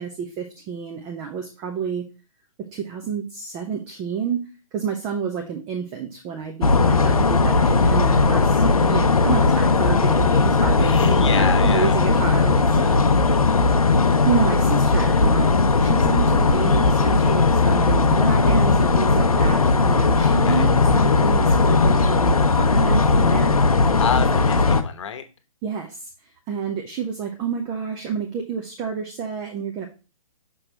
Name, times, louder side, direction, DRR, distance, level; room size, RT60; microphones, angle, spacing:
voice 1, 0.0-2.0 2.6-13.5 14.3-23.6 25.6-26.1 26.5-29.9, right 7 dB, 20° right, 3 dB, 0.9 m, -29 dB
sound 1, 6.6-24.8, left 3 dB, 80° left, 0.8 m, -18 dB
voice 2, 10.8-12.0 13.2-13.6 20.5-20.6 24.0-25.2, left 7 dB, 55° left, 9 dB, 1.1 m, -29 dB
6.3 x 6.2 x 3.0 m, 0.31 s
figure-of-eight pair, 125°, 18 cm